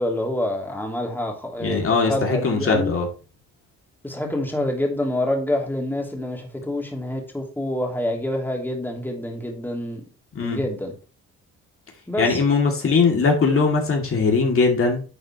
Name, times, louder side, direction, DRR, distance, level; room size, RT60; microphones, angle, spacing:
voice 1, 0.0-2.9 4.0-10.0 10.4-10.9 12.1-12.4, left 1 dB, 5° left, 1 dB, 3.0 m, -27 dB
voice 2, 1.6-3.1 10.3-10.6 12.2-15.0, left 4 dB, 45° left, 1 dB, 2.5 m, -20 dB
11.0 x 6.5 x 3.1 m, 0.35 s
cardioid pair, 90°, 30 cm